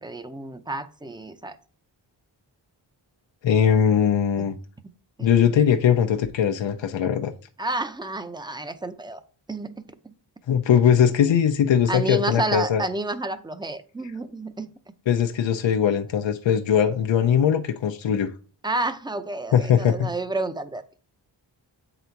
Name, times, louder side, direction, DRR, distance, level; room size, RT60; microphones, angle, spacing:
voice 1, 0.0-1.6 5.2-5.3 7.6-9.2 9.5-10.1 11.3-11.4 11.9-14.7 18.6-20.8, right 2 dB, 10° right, 0.5 m, -30 dB
voice 2, 3.4-4.6 5.2-7.3 10.5-12.8 15.1-18.3 19.5-20.1, left 8 dB, 85° left, 0.7 m, -20 dB
8.3 x 4.0 x 4.5 m
wide cardioid pair, 160°, 44 cm